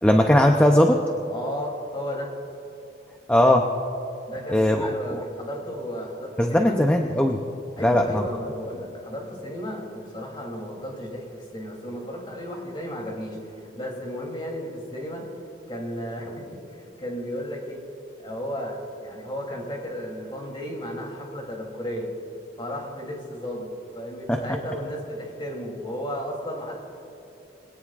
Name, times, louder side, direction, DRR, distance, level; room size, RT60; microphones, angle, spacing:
voice 1, 0.0-1.0 3.3-3.7 4.5-4.9 6.4-7.4 7.8-8.2 24.3-24.4, left 1 dB, 5° left, 3 dB, 0.6 m, -19 dB
voice 2, 1.3-2.3 4.3-6.8 7.8-15.3 15.7-17.8 18.2-22.1 22.6-26.8, equal, 25° left, -1 dB, 3.0 m, -34 dB
22.5 x 17.5 x 2.5 m, 3.0 s
head